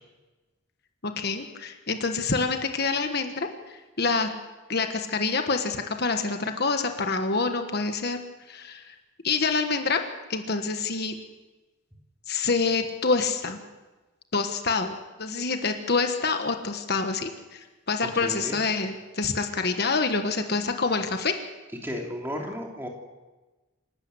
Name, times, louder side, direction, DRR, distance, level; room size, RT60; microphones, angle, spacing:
voice 1, 1.0-4.3 4.7-8.2 8.5-8.9 9.2-10.0 10.3-11.2 12.3-13.6 14.3-21.3, left 4 dB, 50° left, 6 dB, 1.4 m, -27 dB
voice 2, 18.2-18.6 21.8-22.9, equal, 10° right, 0 dB, 3.1 m, -33 dB
28.0 x 12.5 x 8.0 m, 1.2 s
head